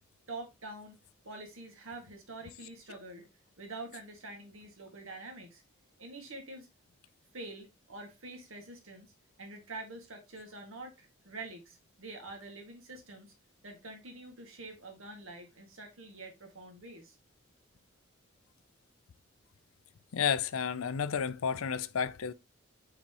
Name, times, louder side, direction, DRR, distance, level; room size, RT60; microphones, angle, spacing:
voice 1, 0.3-1.0 1.3-3.3 3.6-5.6 6.0-6.7 7.3-9.1 9.4-13.3 13.6-17.2, right 2 dB, 80° right, 2.0 m, -46 dB
voice 2, 20.1-22.3, left 7 dB, 90° left, 0.5 m, -31 dB
8.5 x 4.3 x 3.0 m
head